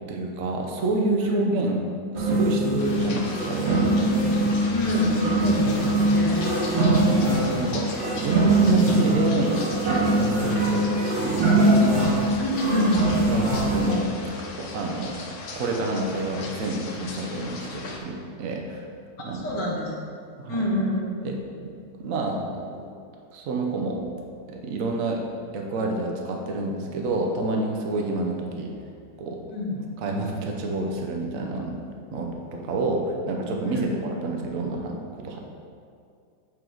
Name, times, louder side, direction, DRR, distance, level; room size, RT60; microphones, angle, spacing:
voice 1, 0.1-1.9 2.1-3.9 6.9-7.9 8.2-11.9 13.3-14.1 14.6-15.1 15.6-18.9 19.2-19.5 20.4-20.7 21.2-21.4 22.0-22.9 23.3-24.0 24.5-25.2 25.5-28.7 29.2-29.4 30.0-31.7 32.1-35.4, right 2 dB, 55° right, 1 dB, 1.1 m, -28 dB
sound 1, 2.1-14.0, right 1 dB, 35° right, 1.3 m, -22 dB
sound 2, 2.8-18.0, left 3 dB, 55° left, 0.9 m, -38 dB
voice 2, 4.7-6.4 12.4-13.1 19.4-19.9 20.5-21.2 29.5-29.8 33.8-33.9, left 1 dB, 80° left, -3 dB, 1.9 m, -26 dB
7.8 x 4.7 x 3.9 m, 2.4 s
omnidirectional pair, 1.9 m